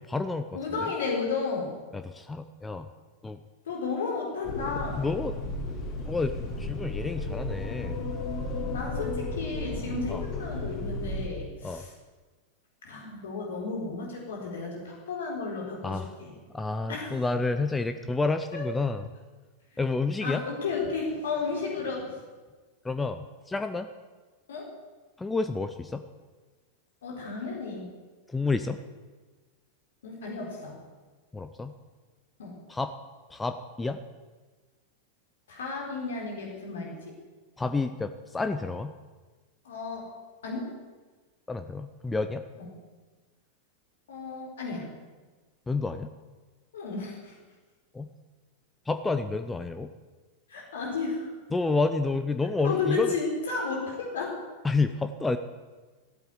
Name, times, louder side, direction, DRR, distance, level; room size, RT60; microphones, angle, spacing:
voice 1, 0.0-0.9 1.9-2.9 3.2-3.4 5.0-5.4 6.0-8.1 10.1-10.2 11.6-11.8 15.8-16.1 16.5-19.0 19.8-20.4 22.8-23.9 25.2-26.1 28.3-28.8 31.3-31.7 32.7-32.9 33.3-34.0 37.6-39.0 41.5-42.4 45.7-46.1 47.9-48.1 48.9-49.9 51.5-53.2 54.6-55.4, left 3 dB, 10° left, 9 dB, 0.7 m, -29 dB
voice 2, 0.5-1.7 3.7-5.1 8.7-11.9 12.8-16.3 16.9-17.1 18.5-18.6 20.2-22.2 24.5-24.7 27.0-27.9 30.0-30.8 32.4-32.6 35.5-37.1 39.6-40.1 40.4-40.7 42.6-42.7 44.1-44.9 46.7-47.3 50.5-51.3 52.6-54.4, left 4 dB, 60° left, -1 dB, 4.2 m, -33 dB
sound 1, 4.4-11.3, left 2 dB, 40° left, 4.3 m, -34 dB
14.0 x 8.4 x 9.8 m, 1.3 s
figure-of-eight pair, 90°, 0 cm